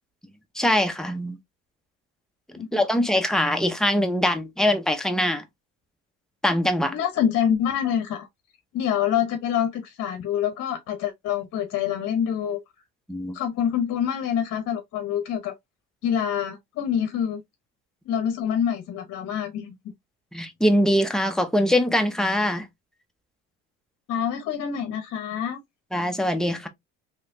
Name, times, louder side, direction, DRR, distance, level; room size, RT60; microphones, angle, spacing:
voice 1, 0.6-1.4 2.5-5.4 6.4-7.0 13.1-13.4 20.3-22.7 25.9-26.7, equal, ahead, 0.7 m, -23 dB
voice 2, 6.9-8.3 8.7-12.6 13.3-15.6 16.0-17.4 18.1-19.8 24.1-25.6, left 9 dB, 55° left, 0.9 m, -26 dB
3.1 x 3.0 x 2.6 m
supercardioid pair, 90°, 32 cm